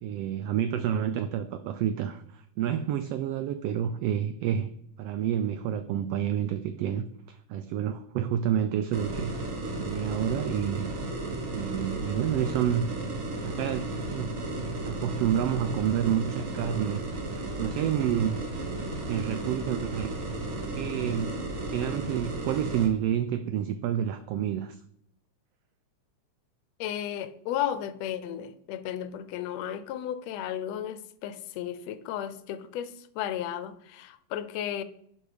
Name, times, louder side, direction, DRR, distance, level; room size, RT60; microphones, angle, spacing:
voice 1, 0.0-4.7 5.0-9.3 9.8-10.9 11.5-12.9 13.4-14.4 14.8-17.0 17.6-18.5 19.1-20.1 20.7-21.3 21.7-24.8, right 10 dB, 80° right, 1.4 m, -29 dB
sound 1, 8.9-22.9, right 2 dB, 45° right, 1.1 m, -34 dB
voice 2, 26.8-34.8, left 10 dB, 75° left, 1.7 m, -34 dB
10.5 x 5.2 x 4.9 m
omnidirectional pair, 3.3 m